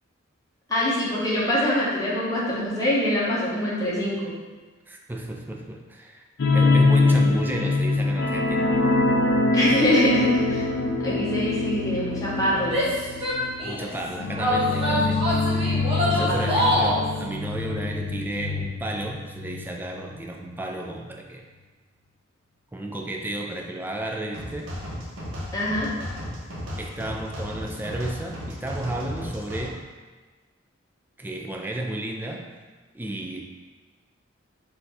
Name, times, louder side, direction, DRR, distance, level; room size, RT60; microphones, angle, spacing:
voice 1, 0.7-4.3 9.5-10.6 11.0-12.8 16.0-16.7 25.5-25.9, left 1 dB, 20° left, -7 dB, 1.1 m, -24 dB
voice 2, 4.9-6.2 6.5-8.7 13.6-15.2 16.1-21.4 22.7-24.8 26.8-29.9 31.2-32.6 32.9-33.4, right 1 dB, 10° right, 1 dB, 0.4 m, -33 dB
sound 1, 6.4-19.7 20.0-20.1 20.5-20.6, left 3 dB, 60° left, 0.5 m, -24 dB
Female speech woman speaking / Yell, 12.6-13.9 14.4-17.0, equal, 30° right, 1.1 m, -24 dB
sound 2, 24.3-29.7, equal, 70° right, 0.9 m, -35 dB
4.2 x 2.7 x 4.1 m, 1.3 s
head